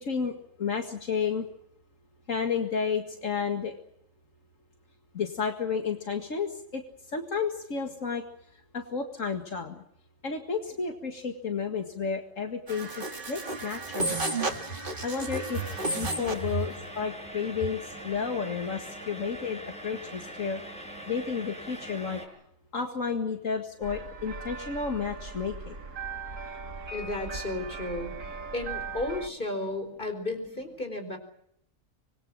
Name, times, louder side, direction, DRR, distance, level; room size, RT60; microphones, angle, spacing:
voice 1, 0.0-1.5 2.3-3.7 5.1-6.8 7.1-8.2 8.7-9.8 10.2-12.9 13.3-14.2 15.0-15.6 16.0-20.6 21.1-22.2 22.7-25.8, left 6 dB, 75° left, 4 dB, 2.3 m, -31 dB
sound 1, 12.7-16.5, right 2 dB, 40° right, 2.3 m, -32 dB
sound 2, 15.5-22.3, right 1 dB, 5° left, 5.9 m, -42 dB
sound 3, 23.8-29.3, right 4 dB, 75° right, 2.4 m, -39 dB
voice 2, 26.9-28.1 28.5-31.2, left 1 dB, 40° left, 7 dB, 4.7 m, -33 dB
25.5 x 21.5 x 7.5 m, 0.73 s
omnidirectional pair, 1.4 m